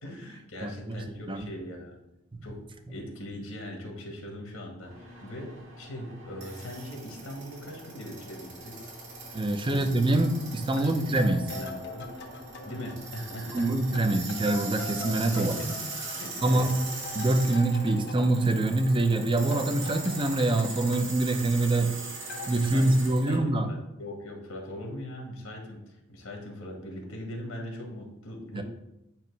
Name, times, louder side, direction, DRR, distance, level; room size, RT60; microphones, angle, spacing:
voice 1, 0.0-2.0 2.4-2.6 2.9-5.5 5.8-8.9 9.7-9.9 10.8-11.1 11.4-12.1 12.6-13.7 15.4-15.7 16.2-16.7 22.5-28.6, left 1 dB, 85° left, 1 dB, 1.5 m, -40 dB
voice 2, 0.6-1.0 1.3-1.5 9.3-11.4 13.5-15.7 16.4-16.7 17.1-21.9 22.5-23.7 28.5-28.6, right 2 dB, 25° right, 6 dB, 0.6 m, -25 dB
sound 1, 4.8-23.4, right 3 dB, 65° right, 2.1 m, -41 dB
sound 2, 11.2-13.6 14.0-19.2 19.5-22.0 22.3-22.7, left 2 dB, 60° left, 0.9 m, -42 dB
9.0 x 3.0 x 4.6 m, 0.87 s
head